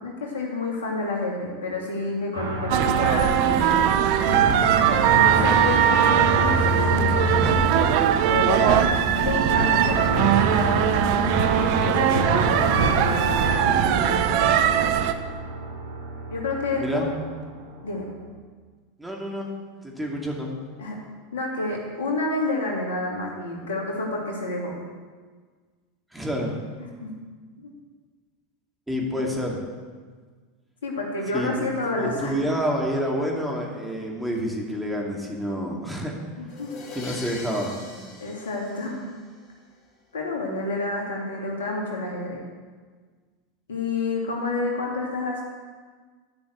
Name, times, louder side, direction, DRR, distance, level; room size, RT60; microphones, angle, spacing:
voice 1, 0.0-4.2 5.0-7.6 8.3-8.9 9.2-10.8 11.8-15.0 16.3-17.2 17.8-18.1 20.8-21.0 21.3-24.7 26.8-27.1 27.6-27.7 29.2-29.3 30.8-32.3 36.4-37.0 38.2-39.1 40.1-42.4 43.7-45.4, left 2 dB, 75° left, -1 dB, 2.4 m, -29 dB
sound 1, 2.3-18.3, right 1 dB, 75° right, 1.7 m, -29 dB
sound 2, 2.7-15.1, right 10 dB, 55° right, 0.7 m, -20 dB
voice 2, 16.7-17.1 19.0-19.5 19.8-20.5 26.1-26.6 28.9-29.6 31.3-36.2 36.9-37.8, equal, 5° right, -1 dB, 2.5 m, -28 dB
sound 3, 36.5-39.5, left 3 dB, 45° left, 2.1 m, -41 dB
11.5 x 6.1 x 7.8 m, 1.5 s
hypercardioid pair, 85°, 0 cm